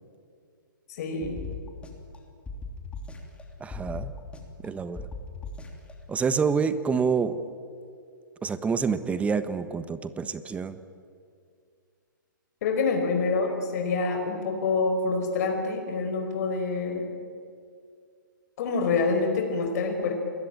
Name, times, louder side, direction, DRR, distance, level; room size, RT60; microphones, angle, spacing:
voice 1, 0.9-1.4 12.6-17.1 18.6-20.1, left 4 dB, 50° left, 4 dB, 4.8 m, -26 dB
sound 1, 1.2-2.2 2.5-3.4 3.7-4.7 5.0-5.9, left 3 dB, 10° left, 3.2 m, -38 dB
voice 2, 3.6-4.1 4.6-5.0 6.1-7.4 8.4-10.8, right 5 dB, 10° right, 12 dB, 1.2 m, -27 dB
28.5 x 21.5 x 9.0 m, 2.2 s
hypercardioid pair, 130°, 11 cm